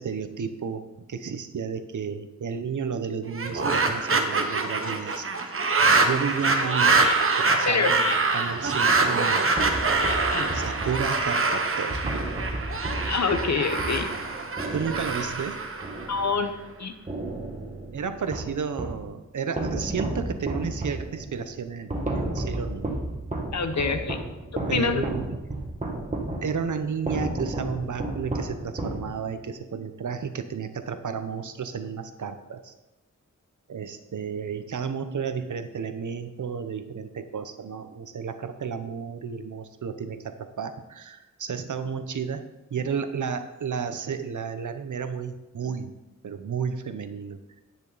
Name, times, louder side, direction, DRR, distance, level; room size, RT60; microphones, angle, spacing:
voice 1, 0.0-5.3 6.0-7.1 7.4-9.4 10.5-12.2 14.7-15.6 17.9-22.9 23.9-24.3 24.7-25.4 26.4-32.7 33.7-42.4 42.7-45.9 46.2-47.4, right 6 dB, 70° right, 9 dB, 0.9 m, -32 dB
sound 1, 3.3-16.5, right 3 dB, 45° right, 1.1 m, -25 dB
sound 2, 9.6-16.7 17.1-19.1 19.6-29.5, right 2 dB, 25° right, 1.6 m, -33 dB
voice 2, 13.1-14.1 16.1-16.5 16.8-16.9 23.5-24.2 24.7-25.0, left 5 dB, 60° left, 8 dB, 1.0 m, -25 dB
10.5 x 9.1 x 4.1 m, 1.0 s
wide cardioid pair, 125°, 31 cm